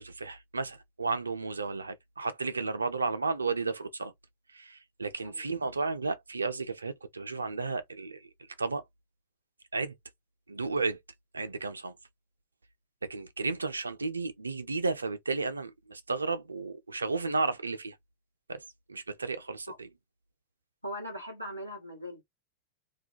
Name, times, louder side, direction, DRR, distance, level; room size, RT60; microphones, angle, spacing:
voice 1, 0.0-4.1 4.5-8.3 8.6-8.8 9.7-10.0 10.5-11.0 11.3-12.0 13.0-18.0 18.5-18.6 18.9-19.9, right 3 dB, 80° right, 0.4 m, -33 dB
voice 2, 20.8-22.2, equal, 90° left, 1.1 m, -40 dB
2.3 x 2.1 x 2.7 m
figure-of-eight pair, 90°, 0 cm